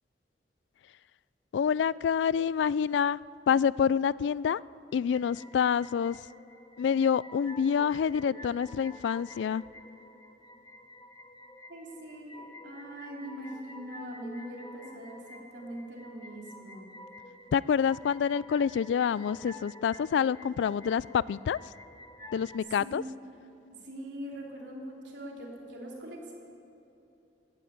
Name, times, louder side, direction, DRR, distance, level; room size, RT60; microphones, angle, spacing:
voice 1, 1.5-3.2 3.5-4.6 4.9-6.2 6.8-9.6 17.5-21.6 22.3-23.0, left 7 dB, 90° left, 21 dB, 0.3 m, -27 dB
sound 1, 4.9-22.6, left 1 dB, 20° left, 1.0 m, -50 dB
voice 2, 11.7-16.9 22.4-22.5 22.8-23.1 23.8-26.3, equal, 85° right, -2 dB, 3.5 m, -42 dB
15.0 x 10.0 x 9.4 m, 3.0 s
head